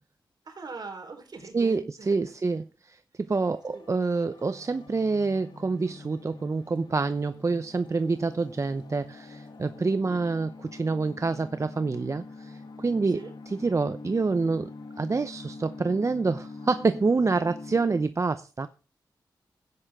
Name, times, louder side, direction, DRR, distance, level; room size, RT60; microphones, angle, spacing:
voice 1, 0.4-2.1 2.5-2.6 3.7-3.9 10.0-10.2 13.1-13.3, right 4 dB, 60° right, 4.3 m, -42 dB
voice 2, 1.5-14.7 15.0-18.7, right 4 dB, 40° right, 0.8 m, -27 dB
sound 1, 3.4-18.0, left 3 dB, 70° left, 2.6 m, -45 dB
16.0 x 10.0 x 3.7 m
cardioid pair, 75°, 8 cm